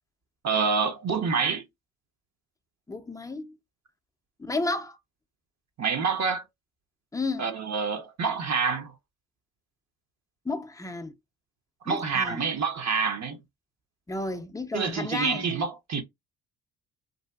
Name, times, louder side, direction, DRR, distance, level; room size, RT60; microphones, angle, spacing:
voice 1, 0.4-1.6 5.8-6.4 7.4-8.9 11.8-13.4 14.7-16.0, right 5 dB, 45° right, 0.7 m, -27 dB
voice 2, 2.9-3.5 4.4-5.0 7.1-7.5 10.5-11.1 11.9-12.4 14.1-15.5, left 2 dB, 10° left, 0.4 m, -32 dB
2.7 x 2.4 x 2.2 m
hypercardioid pair, 55°, 39 cm